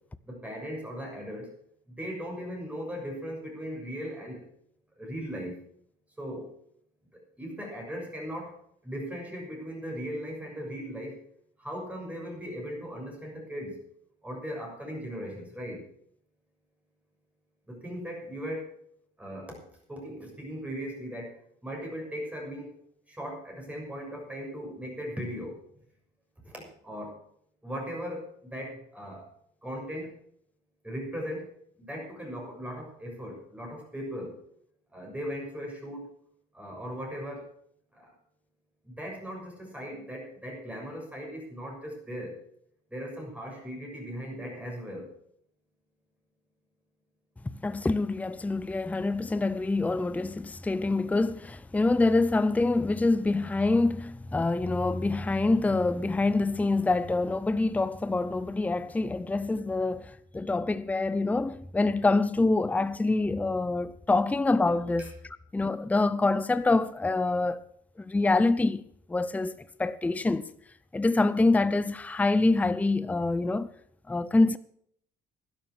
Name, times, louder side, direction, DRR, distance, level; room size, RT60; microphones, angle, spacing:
voice 1, 0.3-1.5 1.9-4.4 5.0-5.6 6.2-6.6 7.1-8.5 8.8-11.2 11.6-13.8 14.2-15.8 17.7-18.7 19.2-19.6 19.9-22.8 23.1-25.6 26.4-27.2 27.6-29.3 29.6-30.1 30.8-31.5 31.8-34.4 34.9-36.1 36.5-37.5 37.9-38.1 38.8-42.4 42.9-45.1 65.0-65.1, equal, 10° right, 6.7 m, -38 dB
voice 2, 47.4-65.1 65.5-67.6 68.0-68.8 69.1-70.5 70.9-73.7 74.1-74.6, left 3 dB, 10° left, 0.5 m, -26 dB
11.5 x 11.5 x 6.5 m
cardioid pair, 110°, 17 cm